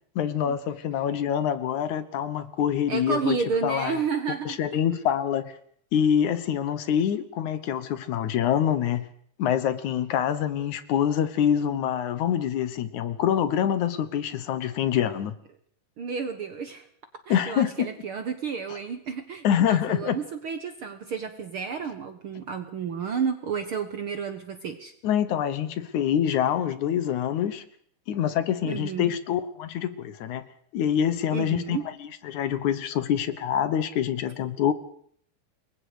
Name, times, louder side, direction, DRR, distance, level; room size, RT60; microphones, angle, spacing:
voice 1, 0.2-3.4 3.6-4.0 4.5-5.5 5.9-9.1 9.4-15.3 17.3-17.9 19.4-20.2 25.0-27.6 28.1-30.5 30.7-34.7, left 9 dB, 70° left, 13 dB, 2.4 m, -25 dB
voice 2, 2.9-4.6 16.0-16.9 17.3-24.9 28.6-29.1 31.3-31.8, right 6 dB, 60° right, 8 dB, 1.5 m, -31 dB
28.0 x 22.5 x 5.0 m, 0.62 s
omnidirectional pair, 3.8 m